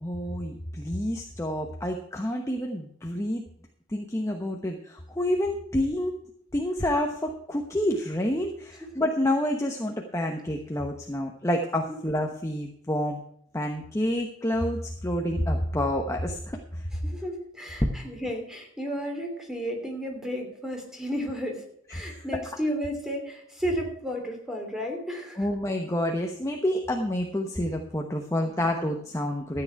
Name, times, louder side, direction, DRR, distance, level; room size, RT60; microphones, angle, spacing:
voice 1, 0.0-3.4 3.9-6.2 6.5-13.2 13.5-16.9 17.8-17.9 21.9-22.4 25.4-29.6, left 1 dB, 15° left, 2 dB, 1.0 m, -28 dB
voice 2, 17.0-21.6 21.9-25.5 28.4-28.6, equal, 5° right, 2 dB, 2.9 m, -33 dB
13.5 x 8.9 x 4.7 m, 0.69 s
head